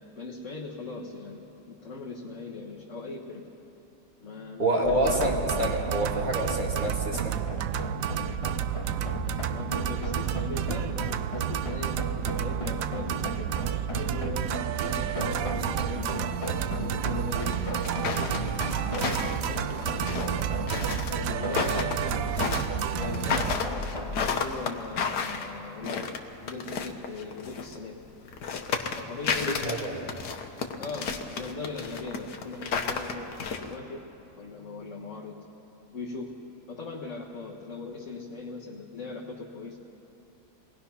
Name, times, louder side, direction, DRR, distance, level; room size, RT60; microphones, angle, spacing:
voice 1, 0.0-3.4 4.2-5.4 9.5-16.4 16.7-17.8 18.4-20.1 21.1-23.5 24.2-26.1 26.4-28.0 28.9-29.6 29.9-30.1 30.8-33.3 33.6-34.1 34.4-35.4 35.9-36.3 36.7-39.8, left 3 dB, 50° left, -4 dB, 1.7 m, -39 dB
voice 2, 4.6-7.3 29.5-29.9, right 1 dB, 30° right, -1 dB, 2.6 m, -27 dB
sound 1, 4.8-24.3, equal, 20° left, 1.6 m, -35 dB
sound 2, 5.0-23.6, right 11 dB, 65° right, 0.9 m, -31 dB
sound 3, 17.4-27.8 28.2-33.8, left 5 dB, 80° left, 1.7 m, -32 dB
26.0 x 19.5 x 5.7 m, 3.0 s
omnidirectional pair, 1.7 m